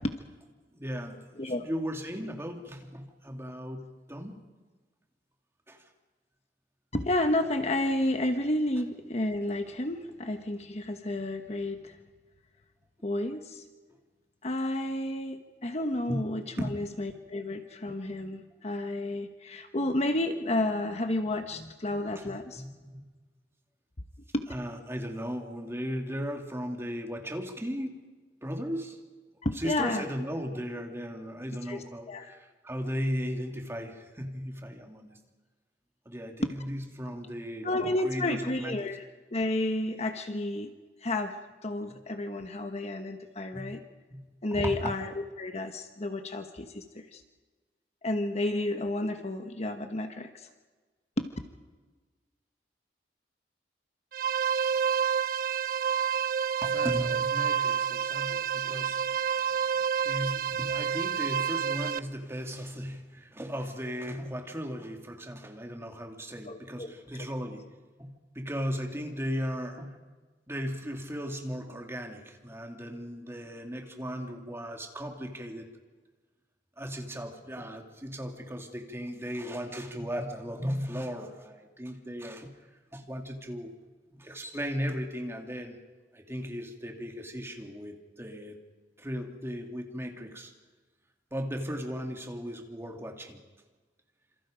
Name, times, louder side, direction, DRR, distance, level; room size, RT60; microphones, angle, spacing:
voice 1, 0.7-1.2 1.4-4.4 5.7-5.8 16.1-16.2 16.6-17.0 22.2-23.1 24.4-28.0 28.4-29.0 29.5-35.1 36.1-37.7 38.0-39.0 43.5-43.8 44.1-44.2 44.5-44.9 56.6-59.2 60.0-67.7 68.0-70.0 70.5-75.7 76.8-82.5 82.9-83.7 84.1-85.8 86.1-88.6 89.0-90.5 91.3-93.4, equal, 15° right, 2 dB, 2.5 m, -36 dB
voice 2, 6.9-12.0 13.0-13.6 14.4-22.6 24.3-24.4 29.4-30.0 31.7-32.3 36.4-36.5 37.6-39.0 39.3-40.7 41.0-41.4 41.6-43.8 44.4-47.2 48.0-50.5 51.2-51.3 66.5-67.3, left 1 dB, 40° left, 6 dB, 1.2 m, -31 dB
sound 1, 54.1-62.0, right 7 dB, 55° right, 0.6 m, -29 dB
27.5 x 27.5 x 5.2 m, 1.3 s
head